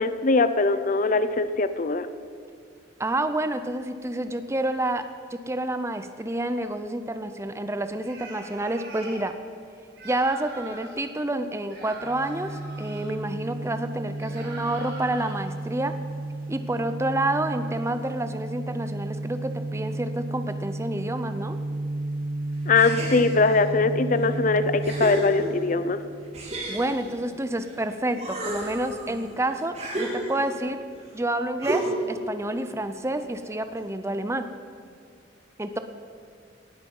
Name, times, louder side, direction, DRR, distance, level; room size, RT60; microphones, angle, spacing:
voice 1, 0.0-2.1 22.7-26.0, left 3 dB, 45° left, 12 dB, 0.6 m, -22 dB
voice 2, 3.0-5.0 5.5-9.3 10.0-15.9 16.5-21.6 26.7-30.8 31.1-34.5 35.6-35.8, right 1 dB, 15° right, 9 dB, 0.6 m, -29 dB
sound 1, 8.0-9.3 9.9-11.0 11.7-13.1 14.2-15.3, right 3 dB, 65° right, 4.7 m, -42 dB
sound 2, 12.0-26.5, right 2 dB, 50° right, 1.3 m, -33 dB
sound 3, 22.7-23.6 24.2-24.3 24.8-25.8 26.3-27.8 28.1-30.6 31.6-32.2, right 1 dB, 35° right, 3.5 m, -31 dB
18.5 x 12.5 x 5.5 m, 2.3 s
head